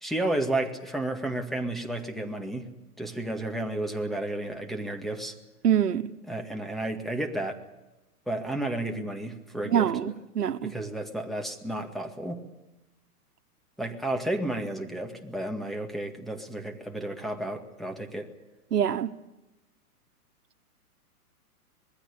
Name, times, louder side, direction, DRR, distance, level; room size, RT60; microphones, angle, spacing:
voice 1, 0.0-2.7 3.0-5.3 6.3-7.6 8.3-10.1 10.6-12.4 13.8-18.3, right 1 dB, ahead, 2.0 m, -32 dB
voice 2, 5.6-6.1 9.6-10.7 18.7-19.1, right 9 dB, 90° right, 1.4 m, -25 dB
26.0 x 21.0 x 7.0 m
hypercardioid pair, 140°, 46 cm